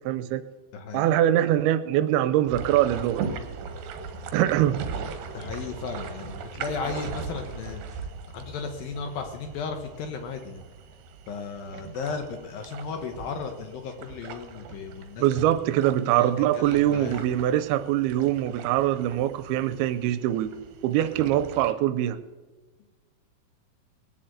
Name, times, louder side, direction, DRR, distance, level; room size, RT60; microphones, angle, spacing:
voice 1, 0.1-0.4 0.9-3.3 4.3-4.8 15.2-20.5 20.8-22.2, right 12 dB, 90° right, 12 dB, 2.6 m, -23 dB
voice 2, 0.7-1.1 5.3-10.6 11.3-15.2 16.1-17.2, left 5 dB, 70° left, 5 dB, 2.6 m, -35 dB
sound 1, 2.5-21.7, right 5 dB, 70° right, 2.7 m, -39 dB
20.0 x 7.5 x 8.0 m, 1.3 s
omnidirectional pair, 4.5 m